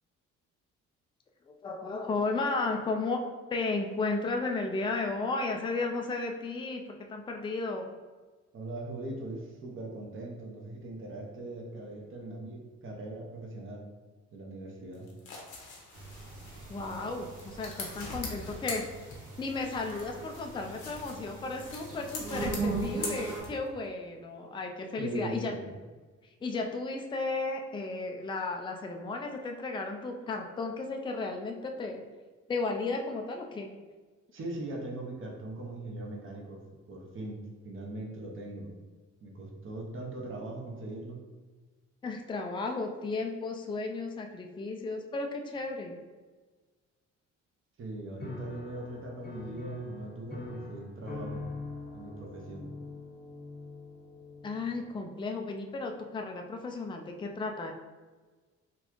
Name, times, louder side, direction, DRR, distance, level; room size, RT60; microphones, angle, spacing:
voice 1, 1.5-3.2 3.5-6.8 7.1-7.9 16.7-18.9 19.4-25.5 26.4-32.0 32.5-33.7 42.0-46.0 54.4-57.7, left 3 dB, 15° left, 3 dB, 0.4 m, -34 dB
voice 2, 8.5-13.9 14.3-15.1 21.9-22.0 25.0-25.8 34.3-36.6 36.9-38.7 39.2-41.2 47.8-51.5 51.9-52.7, right 2 dB, 45° right, 0 dB, 0.9 m, -40 dB
sound 1, 14.9-19.5 19.8-23.8, left 3 dB, 75° left, 1.0 m, -42 dB
sound 2, 15.9-23.4, right 3 dB, 80° right, 1.3 m, -39 dB
Piano, 48.2-55.0, left 2 dB, 35° left, 0.9 m, -42 dB
4.0 x 2.4 x 3.0 m, 1.3 s
cardioid pair, 90°, 30 cm